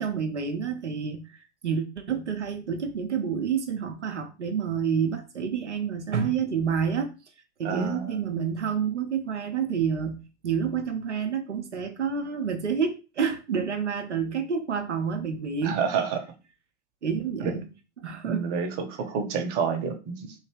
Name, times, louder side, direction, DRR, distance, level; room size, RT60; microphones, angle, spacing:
voice 1, 0.0-7.1 7.6-10.2 10.4-15.8 17.0-17.7 18.0-18.5, right 6 dB, 85° right, 5 dB, 0.6 m, -29 dB
voice 2, 7.6-8.3 15.6-16.2 17.4-17.5 18.2-20.3, right 6 dB, 40° right, 6 dB, 0.8 m, -29 dB
3.2 x 2.8 x 3.2 m, 0.31 s
figure-of-eight pair, 90°, 34 cm